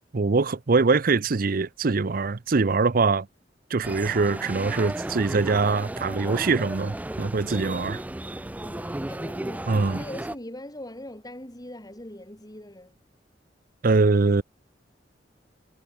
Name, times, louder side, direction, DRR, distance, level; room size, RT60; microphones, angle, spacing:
voice 1, 0.1-3.3 3.7-8.0 9.7-10.0 13.8-14.4, right 4 dB, 55° right, 0.6 m, -23 dB
sound 1, 3.8-10.4, right 1 dB, 10° right, 0.4 m, -34 dB
voice 2, 8.6-13.0, left 1 dB, 20° left, 6.5 m, -41 dB
head